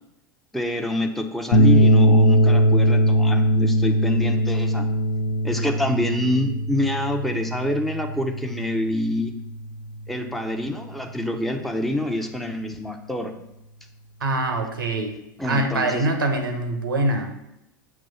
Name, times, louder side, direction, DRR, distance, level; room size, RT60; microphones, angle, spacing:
voice 1, 0.5-4.9 5.4-9.3 10.1-13.3 15.4-16.1, left 1 dB, ahead, 4 dB, 0.7 m, -26 dB
sound 1, 1.5-10.0, equal, 65° left, 0.8 m, -20 dB
voice 2, 14.2-15.2 15.4-17.3, right 2 dB, 85° right, 5 dB, 1.1 m, -24 dB
7.4 x 3.0 x 5.5 m, 0.86 s
hypercardioid pair, 85°, 11 cm